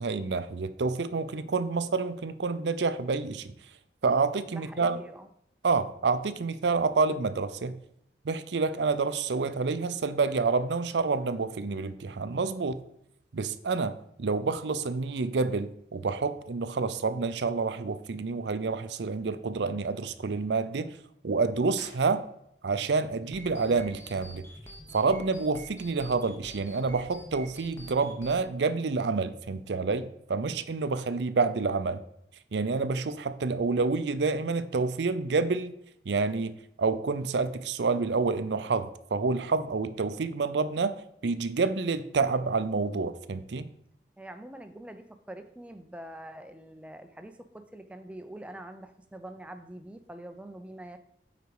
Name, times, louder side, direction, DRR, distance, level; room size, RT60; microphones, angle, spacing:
voice 1, 0.0-3.5 4.0-5.0 5.6-7.8 8.2-12.8 13.3-21.0 21.2-22.2 22.6-24.5 24.9-32.0 32.5-35.8 36.0-41.0 41.2-43.7, right 4 dB, 80° right, 12 dB, 0.5 m, -28 dB
voice 2, 4.5-5.3 44.2-51.0, right 1 dB, 5° right, 8 dB, 0.5 m, -44 dB
sound 1, 21.7-22.8, left 2 dB, 60° left, 3.1 m, -52 dB
sound 2, 23.2-28.3, equal, 15° left, 1.0 m, -47 dB
8.2 x 5.0 x 4.7 m, 0.74 s
head